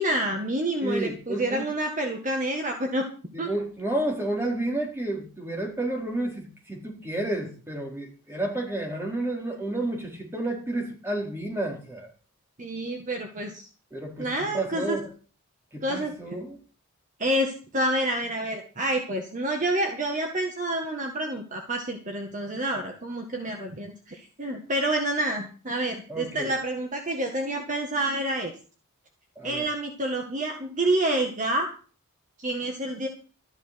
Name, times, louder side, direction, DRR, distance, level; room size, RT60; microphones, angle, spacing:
voice 1, 0.0-3.1 3.4-3.5 12.6-13.7 14.2-15.0 15.8-16.1 17.2-28.5 29.4-31.7 32.4-33.1, right 1 dB, 35° right, 3 dB, 1.9 m, -28 dB
voice 2, 0.8-1.7 3.3-12.1 13.9-15.1 15.7-16.6 26.1-26.5 29.4-29.7, right 1 dB, 10° right, 0 dB, 4.3 m, -31 dB
14.0 x 11.0 x 6.0 m, 0.40 s
head